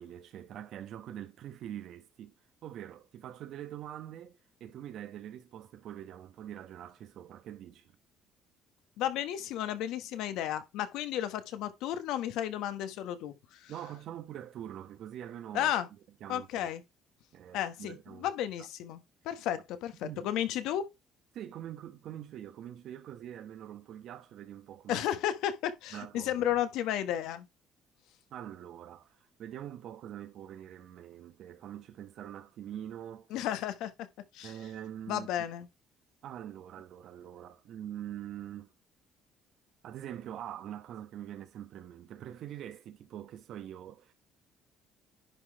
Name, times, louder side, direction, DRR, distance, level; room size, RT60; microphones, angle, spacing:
voice 1, 0.0-2.3 2.6-7.9 13.7-16.7 17.3-18.3 18.6-18.7 20.0-20.3 21.3-25.1 25.9-26.6 28.3-33.3 34.4-35.3 36.2-38.7 39.8-44.1, right 11 dB, 50° right, 1.1 m, -44 dB
voice 2, 9.0-13.7 15.5-15.9 16.3-16.8 17.5-20.9 24.9-27.5 33.3-34.1 34.3-34.5 35.1-35.7, left 11 dB, 80° left, 1.2 m, -33 dB
10.5 x 4.0 x 4.6 m
cardioid pair, 170°, 0 cm